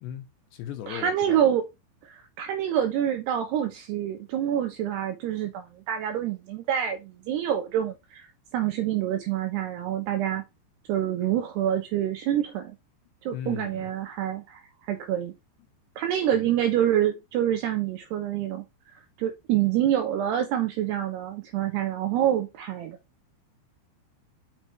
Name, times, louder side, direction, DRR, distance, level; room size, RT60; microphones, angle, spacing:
voice 1, 0.0-1.4 13.3-13.9 16.3-16.5, left 10 dB, 75° left, 2.8 m, -38 dB
voice 2, 0.9-1.6 2.0-8.3 8.5-10.4 10.9-12.8 13.2-15.3 16.0-18.6 18.9-23.0, right 10 dB, 75° right, 2.6 m, -27 dB
6.3 x 5.9 x 4.4 m
omnidirectional pair, 5.7 m